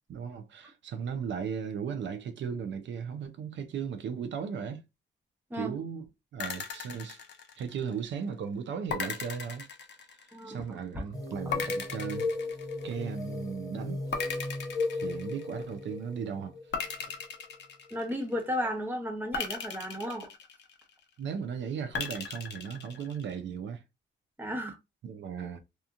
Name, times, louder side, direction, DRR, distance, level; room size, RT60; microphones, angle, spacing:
voice 1, 0.1-4.8 5.5-6.1 6.3-7.2 7.6-9.6 10.1-12.3 12.8-14.0 14.9-16.6 17.0-17.2 21.2-23.8 25.0-25.6, right 7 dB, 70° right, 0.5 m, -36 dB
sound 1, 6.4-8.0 8.9-10.5 11.5-13.2 14.1-15.7 16.7-18.4 19.3-21.0 21.9-23.3, left 6 dB, 65° left, 0.6 m, -38 dB
voice 2, 10.3-10.6 17.9-20.3 24.4-24.8, equal, 10° right, 0.9 m, -34 dB
sound 2, 11.1-17.5, left 2 dB, 20° left, 0.7 m, -36 dB
2.8 x 2.4 x 2.4 m
wide cardioid pair, 130°, 20 cm